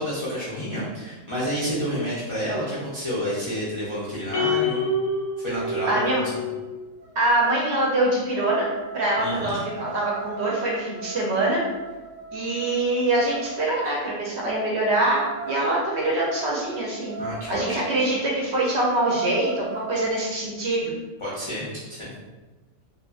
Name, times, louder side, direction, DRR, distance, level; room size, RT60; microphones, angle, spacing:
voice 1, 0.0-4.8 5.4-6.0 9.2-9.6 17.2-17.8 21.2-22.1, equal, 50° left, -9 dB, 0.3 m, -29 dB
sound 1, 4.3-6.8, left 2 dB, 85° left, 1.0 m, -27 dB
voice 2, 5.9-6.2 7.2-8.7 8.9-11.6 12.3-17.2 17.5-20.9, right 2 dB, 65° right, -4 dB, 0.7 m, -24 dB
sound 2, 6.3-6.6 7.0-13.9 15.2-18.0 18.4-18.5 18.8-20.2, right 4 dB, 40° right, 0.8 m, -37 dB
2.6 x 2.5 x 2.3 m, 1.2 s
omnidirectional pair, 1.4 m